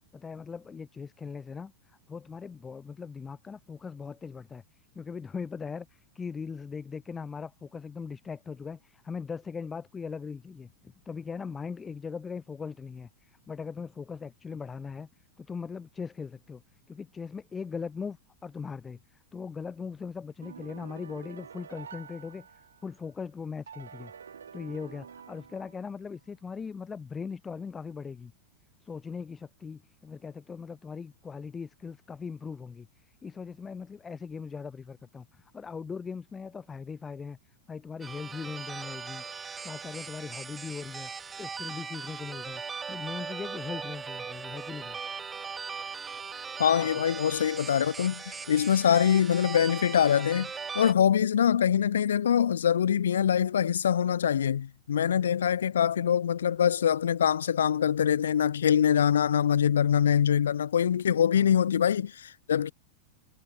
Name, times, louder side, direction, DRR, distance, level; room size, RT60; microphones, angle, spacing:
voice 1, 0.1-15.1 15.4-16.6 16.9-22.5 22.8-24.1 24.5-28.3 28.8-37.4 37.7-41.1 41.4-42.6 42.9-45.0 61.3-61.4, left 5 dB, 15° left, 5.2 m, -40 dB
sound 1, 20.4-23.0 23.7-26.1, right 7 dB, 70° right, 5.9 m, -48 dB
sound 2, 38.0-50.9, right 5 dB, 15° right, 5.9 m, -39 dB
voice 2, 46.6-50.5 50.7-62.7, left 9 dB, 65° left, 1.3 m, -24 dB
figure-of-eight pair, 90°, 0 cm